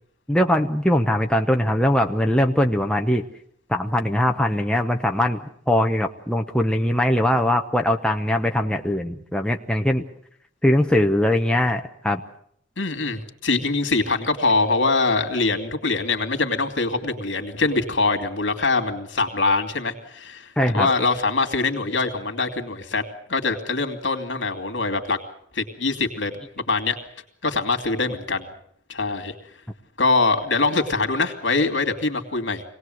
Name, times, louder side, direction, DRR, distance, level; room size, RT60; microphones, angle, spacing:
voice 1, 0.3-3.2 3.7-5.4 5.7-10.0 10.6-12.2 20.6-20.9, left 1 dB, 5° left, 3 dB, 0.9 m, -21 dB
voice 2, 12.8-20.5 20.7-23.0 23.3-25.2 25.5-27.0 27.4-28.5 28.9-29.3 30.0-32.6, left 3 dB, 70° left, 6 dB, 2.6 m, -23 dB
25.5 x 18.5 x 7.9 m, 0.67 s
head